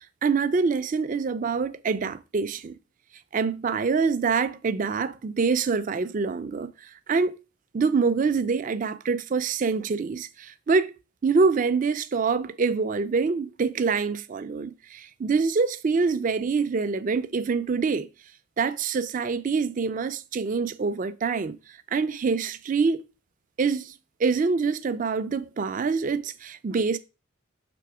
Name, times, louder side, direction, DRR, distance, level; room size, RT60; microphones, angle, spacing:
voice 1, 0.2-2.7 3.3-7.4 7.7-10.9 11.2-18.1 18.6-23.0 23.6-23.9 24.2-27.0, right 4 dB, 40° right, 0.4 m, -25 dB
6.8 x 3.4 x 4.8 m
head